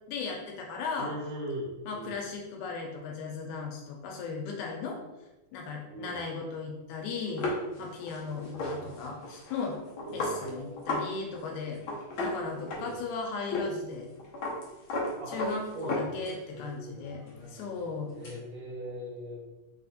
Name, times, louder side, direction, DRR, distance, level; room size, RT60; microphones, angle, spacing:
voice 1, 0.1-1.1 1.9-5.0 5.5-7.5 7.8-9.8 10.1-11.8 12.2-14.1 15.3-17.2 17.5-18.1, left 4 dB, 85° left, 1 dB, 2.1 m, -36 dB
voice 2, 1.0-2.2 5.9-6.2 8.5-9.0 10.0-10.9 12.7-13.1 15.2-15.3 15.7-17.2 18.1-19.4, right 1 dB, 65° right, -8 dB, 2.1 m, -40 dB
sound 1, 7.4-11.1 11.3-11.5 11.7-13.1 13.5-13.7 13.9-16.6 17.0-18.4, left 2 dB, 65° left, 1.2 m, -35 dB
4.9 x 2.5 x 4.0 m, 1.0 s
omnidirectional pair, 3.6 m